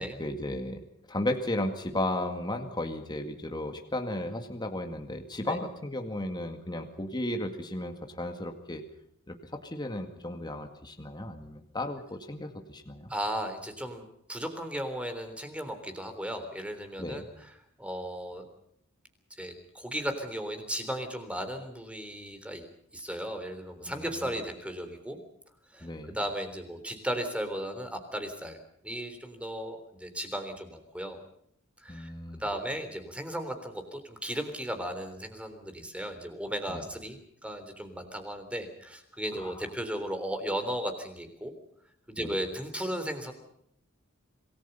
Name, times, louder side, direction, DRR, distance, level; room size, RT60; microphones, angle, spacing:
voice 1, 0.0-8.8 9.3-13.1 17.0-17.2 23.9-24.4 25.8-26.2 31.9-32.4 36.7-36.8 39.4-39.6 42.2-42.3, left 1 dB, 20° left, 5 dB, 2.0 m, -35 dB
voice 2, 13.1-17.5 17.8-18.4 19.3-22.6 22.9-25.2 25.7-25.9 26.1-28.6 28.8-31.2 31.8-32.1 32.4-41.5 42.1-43.3, equal, 5° right, 8 dB, 3.6 m, -36 dB
27.0 x 19.5 x 5.5 m, 0.70 s
head